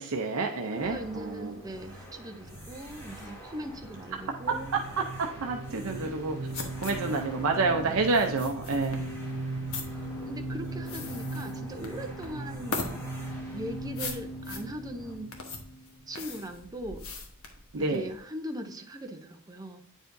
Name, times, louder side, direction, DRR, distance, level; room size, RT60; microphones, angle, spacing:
voice 1, 0.0-1.6 4.7-6.4 6.8-9.0 17.7-18.1, right 3 dB, 70° right, 3 dB, 0.6 m, -29 dB
sound 1, 0.7-15.2, equal, 10° left, 2.0 m, -47 dB
voice 2, 0.7-4.7 7.8-8.1 10.3-12.8 13.5-15.3 16.1-17.1 17.7-19.8, right 1 dB, 15° right, 5 dB, 0.6 m, -40 dB
sound 2, 4.0-16.4, right 2 dB, 85° right, 1.0 m, -39 dB
sound 3, 6.1-18.2, left 4 dB, 65° left, 1.2 m, -40 dB
9.1 x 4.9 x 2.6 m, 0.70 s
head